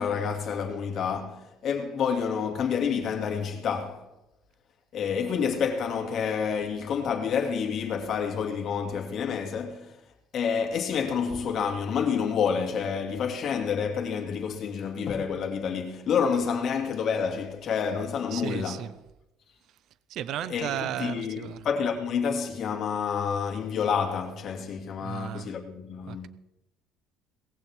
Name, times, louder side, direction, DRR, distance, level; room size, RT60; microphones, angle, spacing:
voice 1, 0.0-4.1 4.9-9.9 10.3-18.8 20.5-26.3, left 6 dB, 40° left, 2.4 m, -29 dB
voice 2, 18.3-18.9 20.1-21.7 25.0-25.5 26.1-26.3, right 11 dB, 50° right, 0.6 m, -34 dB
19.0 x 15.5 x 3.6 m
cardioid pair, 155°, 0 cm